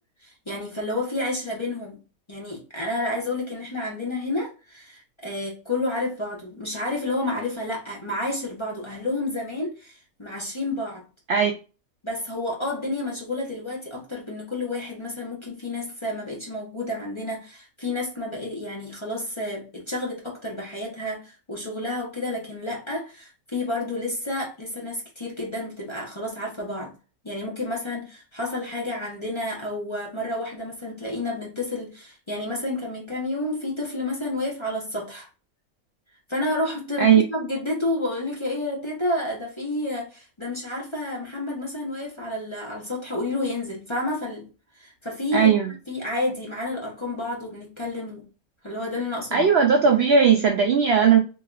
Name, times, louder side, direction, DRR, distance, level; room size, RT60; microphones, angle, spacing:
voice 1, 0.2-2.0 2.3-11.0 12.0-26.9 27.2-35.3 36.3-44.5 44.7-45.6 45.9-48.3 48.6-49.5 49.9-50.0, left 2 dB, 25° left, 0.8 m, -30 dB
voice 2, 45.3-45.7 49.3-51.2, right 6 dB, 65° right, 0.6 m, -17 dB
4.0 x 2.8 x 2.4 m
omnidirectional pair, 1.5 m